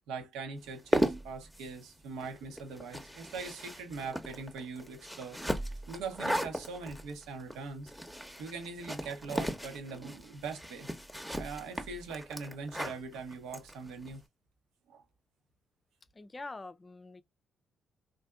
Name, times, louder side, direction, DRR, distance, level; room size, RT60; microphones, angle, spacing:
voice 1, 0.1-7.9 8.4-10.9 11.3-14.2 14.9-15.0, right 4 dB, 80° right, 0.9 m, -42 dB
sound 1, 0.7-14.2, equal, ahead, 0.8 m, -37 dB
voice 2, 16.1-17.2, left 3 dB, 30° left, 0.5 m, -44 dB
3.4 x 2.6 x 2.2 m
hypercardioid pair, 50°, 0 cm